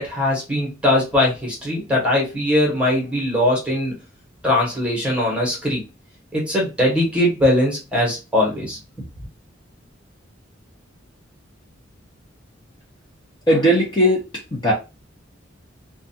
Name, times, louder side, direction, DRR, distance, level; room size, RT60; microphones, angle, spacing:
voice 1, 0.0-4.0 4.4-5.8 6.3-8.8, left 1 dB, 5° right, -2 dB, 1.1 m, -20 dB
voice 2, 13.5-14.7, equal, 25° left, -5 dB, 0.8 m, -18 dB
2.5 x 2.3 x 2.7 m, 0.27 s
head